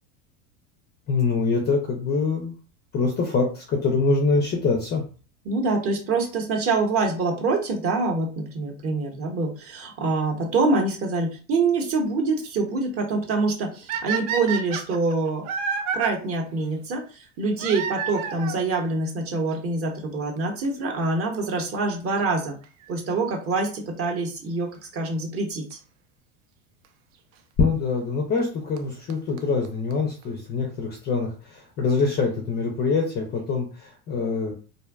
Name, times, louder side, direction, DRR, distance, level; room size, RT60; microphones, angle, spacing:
voice 1, 1.1-2.6 2.9-5.0 27.6-34.5, left 4 dB, 25° left, 1 dB, 0.3 m, -24 dB
voice 2, 5.4-15.5 15.9-22.6 22.9-25.8, right 3 dB, 35° right, 2 dB, 0.7 m, -25 dB
sound 1, 13.9-16.1 17.6-18.6 19.6-19.7 20.4-20.5 20.6-20.7 22.6-22.9 25.7-25.8 26.8-26.9 28.4-28.5 28.8-28.9 29.1-29.2 29.4-29.5 29.6-29.7 29.9-30.0 30.2-30.3, right 6 dB, 65° right, 0.6 m, -29 dB
2.5 x 2.1 x 2.2 m, 0.37 s
supercardioid pair, 115°, 42 cm